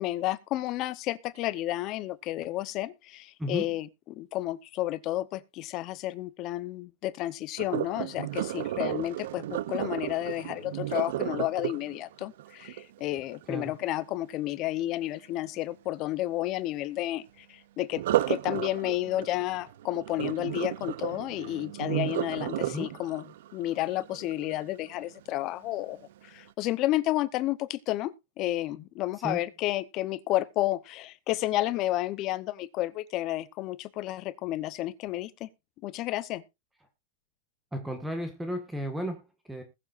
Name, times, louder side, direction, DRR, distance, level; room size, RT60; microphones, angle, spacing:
voice 1, 0.0-23.2 23.5-35.5 35.8-36.4, left 15 dB, 35° left, 0.8 m, -31 dB
voice 2, 3.4-3.8 13.5-13.8 22.6-23.0 29.2-29.4 37.7-39.6, equal, 5° right, 1.6 m, -34 dB
Sink (filling or washing), 7.6-13.5 17.9-25.0 25.5-25.8 26.3-26.4, right 14 dB, 65° right, 0.6 m, -33 dB
20.5 x 7.2 x 2.5 m
supercardioid pair, 165°, 0 cm